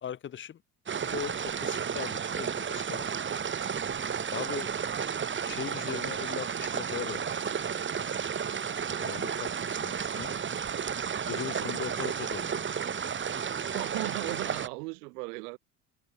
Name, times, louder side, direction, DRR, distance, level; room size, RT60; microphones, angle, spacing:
voice 1, 0.0-0.6 1.0-3.1 4.3-4.7 5.5-7.2 9.0-10.3 11.3-12.7, left 9 dB, 25° left, 0.6 m, -39 dB
sound 1, 0.9-14.7, right 7 dB, 25° right, 1.1 m, -32 dB
voice 2, 13.6-15.6, right 27 dB, 80° right, 0.9 m, -37 dB
hypercardioid pair, 75°, 46 cm